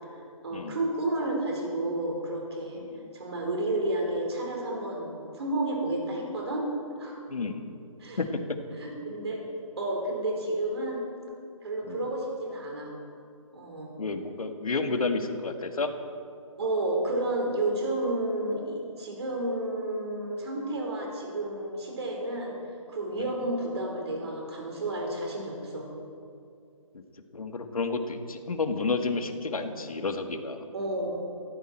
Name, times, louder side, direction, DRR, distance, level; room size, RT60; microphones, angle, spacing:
voice 1, 0.1-2.8 3.1-6.7 7.0-7.3 8.0-8.2 8.8-9.4 9.8-11.0 11.6-12.9 13.5-13.9 16.6-22.6 22.9-25.9 29.5-29.7 30.7-31.2, right 1 dB, 50° right, 0 dB, 4.4 m, -31 dB
voice 2, 7.3-7.7 8.2-8.3 11.9-12.1 14.0-15.9 27.3-30.7, left 3 dB, 85° left, 6 dB, 1.8 m, -30 dB
19.0 x 15.5 x 4.5 m, 2.5 s
hypercardioid pair, 175°, 18 cm